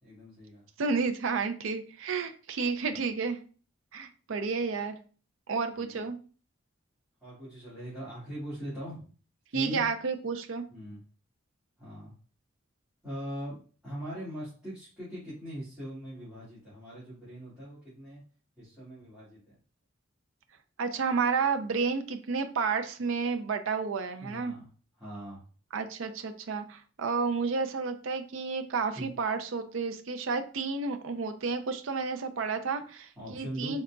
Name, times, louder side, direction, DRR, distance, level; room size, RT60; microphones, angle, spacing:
voice 1, 0.0-0.6 2.9-3.0 5.8-6.0 7.2-9.1 9.5-9.8 10.7-11.0 11.8-12.1 13.0-18.2 18.6-19.6 24.2-24.7 25.0-25.4 29.0-29.1 33.2-33.8, equal, 5° right, -12 dB, 1.9 m, -41 dB
voice 2, 0.8-3.4 3.9-5.0 5.5-6.2 9.5-10.6 20.8-24.5 25.7-33.8, right 5 dB, 75° right, 7 dB, 0.5 m, -31 dB
4.0 x 3.8 x 2.3 m, 0.39 s
head